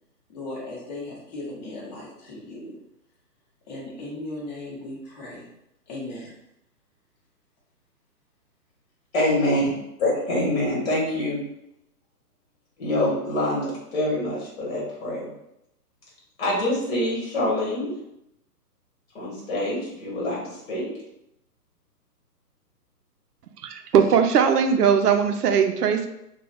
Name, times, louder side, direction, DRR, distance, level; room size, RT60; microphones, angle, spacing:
voice 1, 0.3-2.7 3.7-5.5 5.9-6.3, left 2 dB, 25° left, -6 dB, 0.9 m, -37 dB
voice 2, 9.1-9.7 10.0-11.4 12.8-15.3 16.4-17.9 19.1-20.9, left 1 dB, 45° left, -5 dB, 1.1 m, -25 dB
voice 3, 23.6-26.1, right 7 dB, 70° right, 7 dB, 0.5 m, -19 dB
2.3 x 2.3 x 3.3 m, 0.83 s
hypercardioid pair, 145°, 48 cm